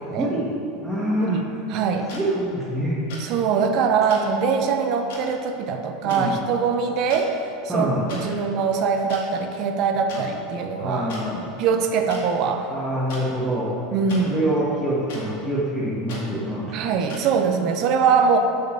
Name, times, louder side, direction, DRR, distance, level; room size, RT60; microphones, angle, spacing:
voice 1, 0.8-1.4 2.0-3.0 6.0-6.4 7.7-8.1 10.1-10.2 10.8-11.5 12.7-13.7 14.3-16.7, right 1 dB, ahead, -10 dB, 1.8 m, -25 dB
voice 2, 1.7-2.1 3.2-7.3 7.7-11.1 11.6-12.7 13.9-14.3 16.7-18.4, right 6 dB, 55° right, 5 dB, 0.8 m, -22 dB
sound 1, 2.1-2.2 3.1-3.3 4.1-4.2 5.1-5.2 6.1-6.2 7.0-7.2 8.1-8.2 9.1-9.2 10.1-10.2 11.1-11.2 12.1-12.2 13.1-13.2 14.1-14.2 15.1-15.2 16.1-16.2 17.1-17.2, left 3 dB, 75° left, 1.9 m, -38 dB
6.6 x 5.2 x 6.8 m, 2.8 s
hypercardioid pair, 100°, 0 cm